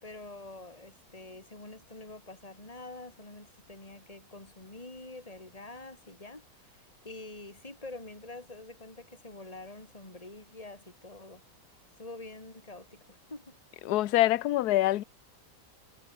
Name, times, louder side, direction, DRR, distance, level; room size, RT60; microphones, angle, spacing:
voice 1, 0.0-11.4 11.7-13.6, left 2 dB, 20° left, 4.3 m, -46 dB
voice 2, 13.8-15.0, left 15 dB, 70° left, 1.2 m, -25 dB
omnidirectional pair, 1.8 m